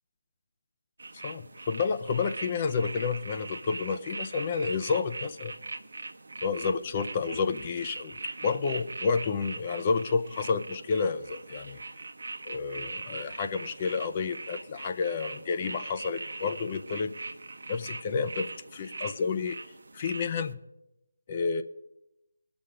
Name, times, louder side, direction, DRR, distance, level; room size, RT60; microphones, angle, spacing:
sound 1, 1.0-20.5, right 3 dB, 60° right, 0.8 m, -41 dB
voice 1, 1.2-5.5 6.4-8.2 8.4-11.8 12.5-17.1 17.7-19.6 19.9-20.6 21.3-21.6, left 5 dB, 30° left, 8 dB, 0.6 m, -30 dB
19.5 x 7.0 x 5.0 m, 0.89 s
figure-of-eight pair, 155°, 0 cm